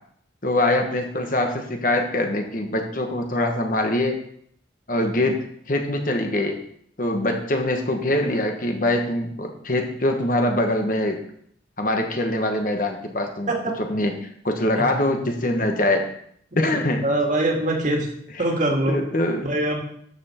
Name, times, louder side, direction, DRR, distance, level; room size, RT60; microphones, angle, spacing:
voice 1, 0.4-4.2 4.9-6.6 7.0-11.2 11.8-13.5 13.9-14.1 14.4-16.1 16.5-17.0 18.9-19.5, left 1 dB, 45° left, 4 dB, 1.4 m, -23 dB
voice 2, 16.7-18.1 18.4-19.0 19.4-19.8, right 1 dB, 45° right, 1 dB, 2.1 m, -23 dB
12.0 x 7.0 x 4.4 m, 0.67 s
head